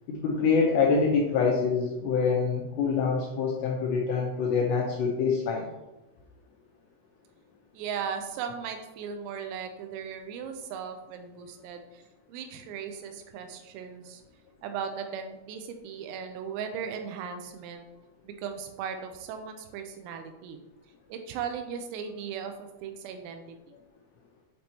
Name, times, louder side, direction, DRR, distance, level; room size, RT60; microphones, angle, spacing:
voice 1, 0.1-5.7, left 5 dB, 80° left, -3 dB, 2.6 m, -25 dB
voice 2, 7.7-12.0 12.3-14.2 14.6-17.9 18.2-20.6 21.1-23.4, right 7 dB, 90° right, 6 dB, 3.5 m, -37 dB
8.3 x 5.2 x 3.0 m, 0.97 s
omnidirectional pair, 5.9 m